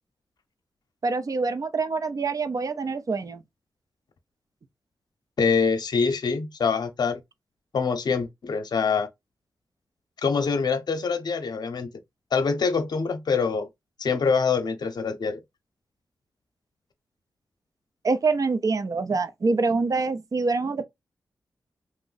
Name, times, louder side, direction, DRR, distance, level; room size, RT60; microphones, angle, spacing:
voice 1, 1.0-3.4 18.0-20.8, right 4 dB, 50° right, 0.5 m, -25 dB
voice 2, 5.4-7.2 7.7-9.1 10.2-11.9 12.3-13.7 14.0-15.4, left 5 dB, 70° left, 0.6 m, -25 dB
2.6 x 2.0 x 3.9 m
cardioid pair, 45°, 7 cm